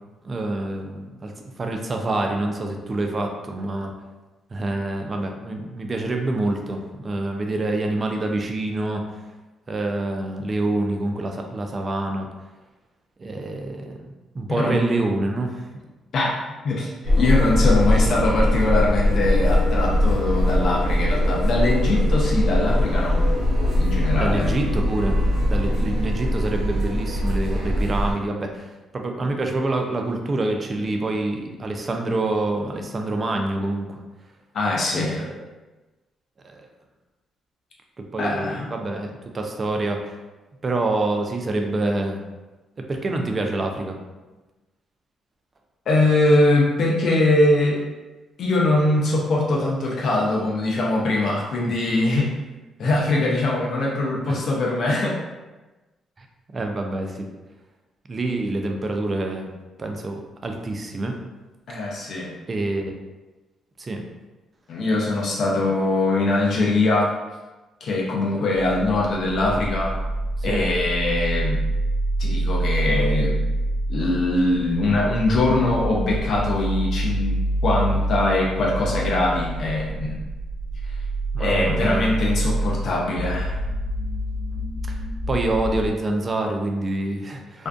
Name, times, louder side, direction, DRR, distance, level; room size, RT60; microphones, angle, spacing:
voice 1, 0.2-3.9 4.5-9.0 9.7-12.3 13.2-15.7 24.2-25.2 25.5-28.7 28.9-34.0 34.9-35.4 36.4-36.7 38.0-40.2 40.6-42.2 42.8-44.0 51.6-51.7 54.3-54.4 56.2-56.3 56.5-57.3 58.1-59.5 59.8-61.2 61.7-61.9 62.5-63.0 63.8-64.0 70.4-70.6 81.3-82.1 84.9-85.0 85.3-87.7, right 2 dB, 35° right, 3 dB, 0.4 m, -26 dB
voice 2, 14.5-14.8 16.1-23.2 23.8-24.5 34.5-35.3 38.2-38.7 45.9-47.8 48.4-52.3 52.8-55.2 61.7-62.4 64.7-67.1 67.8-70.0 70.4-71.7 72.2-73.4 73.9-80.2 80.8-80.9 81.4-83.6 87.6-87.7, left 2 dB, 60° left, -3 dB, 0.5 m, -22 dB
sound 1, 17.0-28.1, left 1 dB, 80° right, 0.8 m, -21 dB
sound 2, 68.5-85.9, right 1 dB, 50° right, 0.8 m, -26 dB
2.5 x 2.2 x 2.4 m, 1.2 s
cardioid pair, 90°, 0 cm